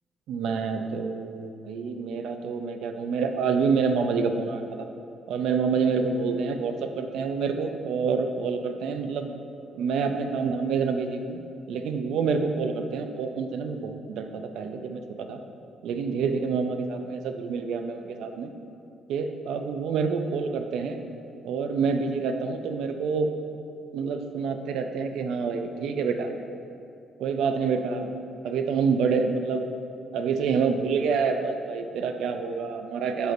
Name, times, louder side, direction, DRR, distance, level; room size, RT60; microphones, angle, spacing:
voice 1, 0.3-4.9 5.3-9.3 9.7-11.4 11.7-15.4 15.8-18.5 19.1-21.0 21.4-23.3 23.9-26.3 27.2-28.1 28.4-29.7 30.1-33.3, right 5 dB, 80° right, 6 dB, 0.5 m, -27 dB
7.9 x 6.0 x 2.5 m, 2.6 s
cardioid pair, 90°, 0 cm